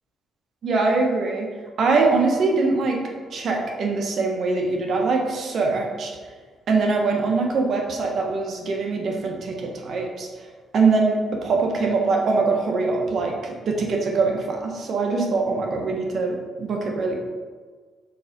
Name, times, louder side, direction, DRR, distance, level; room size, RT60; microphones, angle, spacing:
voice 1, 0.6-1.5 1.8-3.0 3.3-6.1 6.7-10.3 10.7-17.2, right 3 dB, 60° right, 1 dB, 1.3 m, -23 dB
5.4 x 4.1 x 5.2 m, 1.5 s
cardioid pair, 90°, 0 cm